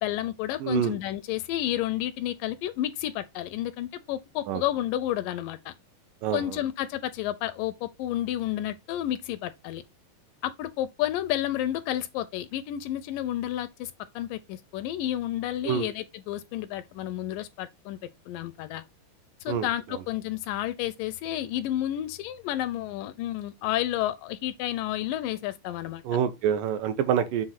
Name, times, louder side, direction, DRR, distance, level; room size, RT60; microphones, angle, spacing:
voice 1, 0.0-5.7 6.3-9.8 10.4-18.0 18.3-18.8 19.4-26.0, left 13 dB, 80° left, 2.0 m, -31 dB
voice 2, 0.6-1.0 4.5-4.6 6.2-6.6 15.7-15.9 19.5-19.7 26.1-27.5, right 9 dB, 75° right, 2.2 m, -26 dB
7.3 x 2.6 x 5.6 m
omnidirectional pair, 4.1 m